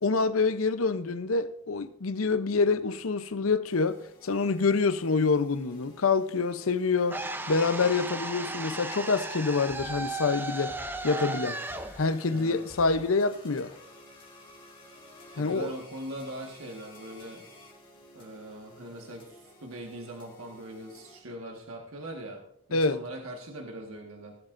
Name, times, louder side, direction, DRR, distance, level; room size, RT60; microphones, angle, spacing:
voice 1, 0.0-10.8 11.0-11.6 12.0-13.7 15.4-15.7 22.7-23.0, left 4 dB, 75° left, 0.7 m, -26 dB
sound 1, 3.6-21.2, left 1 dB, 25° left, 2.8 m, -53 dB
sound 2, 7.1-13.2, right 2 dB, 10° right, 0.7 m, -36 dB
voice 2, 12.3-12.6 15.3-17.4 18.1-22.4 22.7-24.4, right 1 dB, 70° right, 1.6 m, -41 dB
18.5 x 11.5 x 2.6 m
head